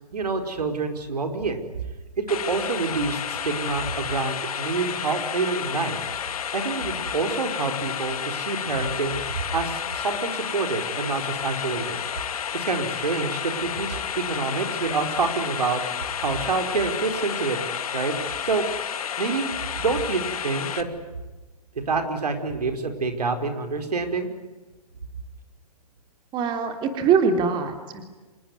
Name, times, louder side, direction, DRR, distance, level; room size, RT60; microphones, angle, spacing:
voice 1, 0.1-1.6 2.2-6.0 6.5-12.0 12.5-15.8 16.2-17.6 17.9-18.7 19.2-19.5 19.8-20.9 21.7-24.3, right 4 dB, 75° right, 7 dB, 4.9 m, -27 dB
sound 1, 2.3-20.8, left 8 dB, 60° left, 2.5 m, -31 dB
voice 2, 26.3-28.0, right 6 dB, 25° right, 6 dB, 3.5 m, -22 dB
27.5 x 20.5 x 9.8 m, 1.2 s
hypercardioid pair, 135°, 20 cm